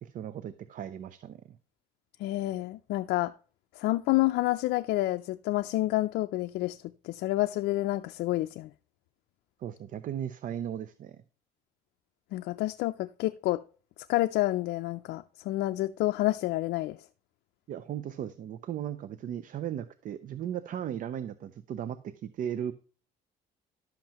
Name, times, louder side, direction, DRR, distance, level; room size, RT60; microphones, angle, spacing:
voice 1, 0.0-1.6 9.6-11.2 17.7-22.7, right 10 dB, 50° right, 0.5 m, -36 dB
voice 2, 2.2-3.3 3.8-6.8 7.0-8.7 12.3-13.6 14.1-17.0, left 17 dB, 80° left, 0.4 m, -29 dB
11.5 x 7.5 x 2.9 m
cardioid pair, 110°, 17 cm